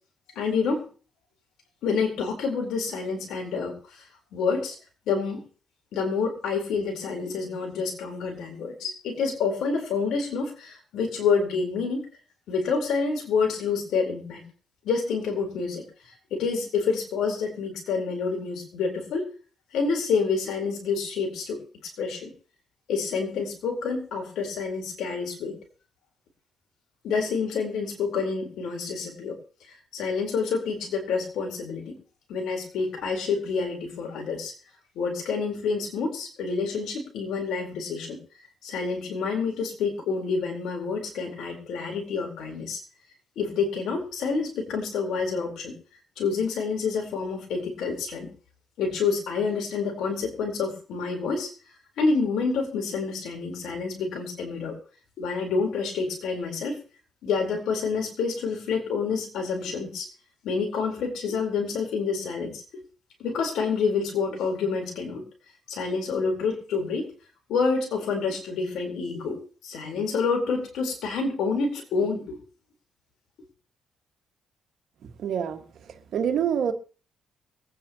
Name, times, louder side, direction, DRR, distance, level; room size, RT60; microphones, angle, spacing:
voice 1, 0.4-0.9 1.8-4.0 4.3-4.8 5.1-5.4 5.9-12.1 12.5-14.5 14.8-15.8 16.3-19.3 19.7-21.6 22.0-22.3 22.9-25.6 27.0-29.4 29.9-32.0 32.3-34.5 34.9-38.2 38.6-42.8 43.4-45.7 46.2-48.3 48.8-51.5 52.0-54.8 55.2-56.8 57.2-60.1 60.4-62.8 63.2-65.2 65.7-67.1 67.5-72.4, left 5 dB, 80° left, 1 dB, 4.2 m, -28 dB
voice 2, 75.2-75.6 76.1-76.7, right 8 dB, 70° right, 6 dB, 1.8 m, -25 dB
23.5 x 9.4 x 3.0 m, 0.38 s
cardioid pair, 90°, 0 cm